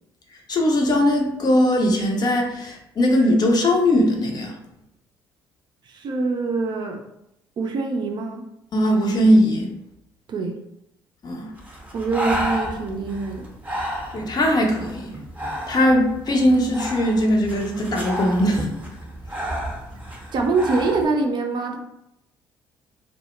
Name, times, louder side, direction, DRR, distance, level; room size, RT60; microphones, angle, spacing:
voice 1, 0.5-4.5 8.7-9.7 11.2-11.5 14.1-15.2 15.7-18.7, left 1 dB, 40° left, 1 dB, 0.6 m, -19 dB
voice 2, 5.9-7.0 7.6-8.4 10.3-10.6 11.9-13.5 20.3-21.8, right 3 dB, 45° right, 3 dB, 0.4 m, -24 dB
Breathing, 11.6-21.1, equal, 15° right, 0.7 m, -31 dB
2.1 x 2.1 x 3.0 m, 0.82 s
hypercardioid pair, 50°, 10 cm